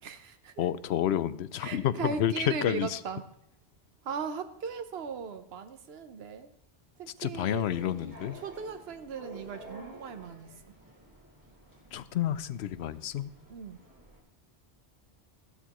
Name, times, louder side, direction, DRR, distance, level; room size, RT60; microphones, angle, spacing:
voice 1, 0.0-0.7 1.6-3.2 4.0-6.5 7.0-7.7 8.3-10.5 13.5-13.8, right 5 dB, 75° right, 8 dB, 1.1 m, -38 dB
voice 2, 0.6-3.0 7.2-8.4 11.9-13.3, left 10 dB, 90° left, 15 dB, 0.9 m, -30 dB
sound 1, 7.6-14.2, equal, 20° right, 2.6 m, -50 dB
15.0 x 12.0 x 3.0 m, 0.77 s
omnidirectional pair, 1.1 m